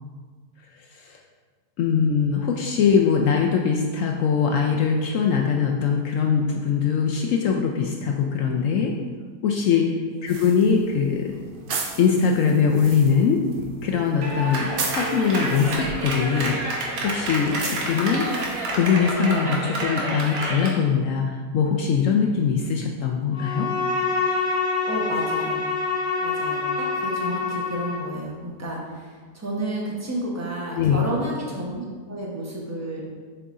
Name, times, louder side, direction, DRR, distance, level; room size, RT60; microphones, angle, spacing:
voice 1, 1.8-8.9 9.4-11.3 12.0-13.4 13.8-16.6 17.0-18.3 18.7-23.7 30.7-31.0, left 6 dB, 70° left, 1 dB, 0.8 m, -22 dB
sound 1, 10.3-18.9, right 4 dB, 65° right, 0.5 m, -37 dB
Clapping, 14.2-20.8, right 2 dB, 90° right, 1.6 m, -28 dB
Bowed string instrument, 23.3-28.1, left 4 dB, 35° left, 1.2 m, -26 dB
voice 2, 24.8-25.6 26.2-33.1, right 1 dB, 15° right, -3 dB, 0.7 m, -31 dB
6.9 x 4.0 x 3.7 m, 1.5 s
omnidirectional pair, 1.7 m